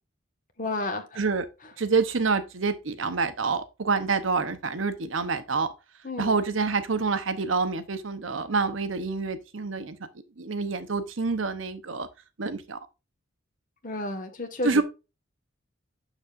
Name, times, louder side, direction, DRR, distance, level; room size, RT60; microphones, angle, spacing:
voice 1, 0.6-1.2 6.0-6.4 13.8-14.8, left 2 dB, 40° left, 1.6 m, -31 dB
voice 2, 1.8-5.7 6.2-10.0 10.4-12.1 12.4-12.8 14.6-14.8, right 4 dB, 80° right, 0.9 m, -27 dB
7.2 x 6.8 x 2.5 m
head